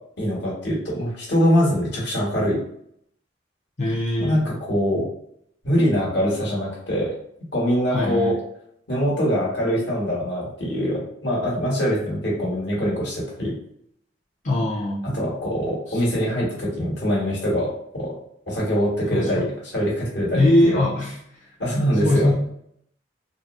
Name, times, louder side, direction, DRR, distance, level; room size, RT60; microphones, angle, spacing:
voice 1, 0.2-2.6 4.2-5.0 5.6-7.1 7.5-8.3 8.9-13.5 15.0-17.7 17.9-18.1 18.5-20.8 21.6-22.3, equal, 65° left, -5 dB, 1.4 m, -23 dB
voice 2, 3.8-4.4 7.9-8.4 14.4-15.1 15.9-16.0 19.1-19.5 20.4-21.2 22.0-22.3, left 1 dB, 40° left, -7 dB, 0.6 m, -21 dB
3.9 x 2.0 x 2.5 m, 0.70 s
head